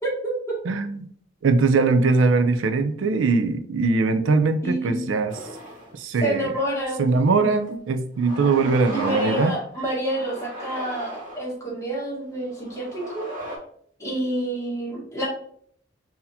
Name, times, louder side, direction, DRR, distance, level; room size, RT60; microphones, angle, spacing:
voice 1, 0.0-0.5 4.6-5.0 6.2-7.1 8.9-13.3 14.0-15.3, right 1 dB, 15° left, -6 dB, 1.4 m, -28 dB
voice 2, 0.7-1.1 1.4-5.4 6.0-6.5 7.0-9.5, right 3 dB, 85° right, 8 dB, 0.4 m, -21 dB
sound 1, 5.3-6.0 6.5-6.6 7.6-7.7 8.2-9.6 10.1-11.5 12.3-13.6, equal, 45° right, 1.0 m, -35 dB
4.0 x 2.8 x 2.7 m, 0.62 s
head